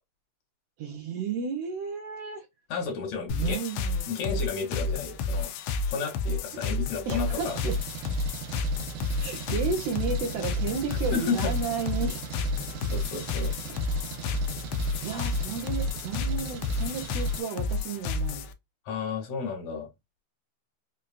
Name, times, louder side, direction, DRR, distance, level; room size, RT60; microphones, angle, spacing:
voice 1, 0.8-2.5 3.3-4.1 7.1-7.8 9.2-12.2 15.0-18.5, right 5 dB, 75° right, 1.6 m, -33 dB
voice 2, 2.7-3.6 4.1-5.5 5.9-7.6 10.9-11.5 12.8-13.5 18.9-19.9, left 5 dB, 70° left, 2.0 m, -32 dB
sound 1, 3.3-18.5, left 3 dB, 85° left, 1.4 m, -30 dB
Engine, 7.4-17.4, right 6 dB, 90° right, 2.4 m, -39 dB
5.2 x 2.3 x 2.4 m
omnidirectional pair, 3.4 m